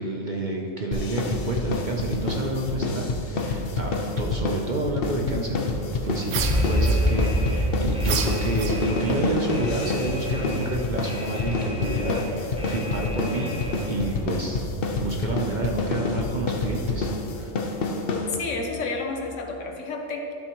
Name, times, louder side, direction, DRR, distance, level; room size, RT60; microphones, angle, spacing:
voice 1, 0.0-13.6 13.9-14.7 15.0-17.5, right 2 dB, 45° right, 0 dB, 0.7 m, -29 dB
sound 1, 0.9-18.7, left 3 dB, 50° left, 0.9 m, -28 dB
sound 2, 6.3-7.4 8.0-9.2, right 8 dB, 75° right, 1.0 m, -31 dB
Alarm, 6.4-14.1, equal, 5° right, 0.6 m, -28 dB
voice 2, 18.3-20.3, left 3 dB, 70° left, 2 dB, 1.2 m, -30 dB
12.0 x 7.7 x 3.0 m, 2.8 s
omnidirectional pair, 1.3 m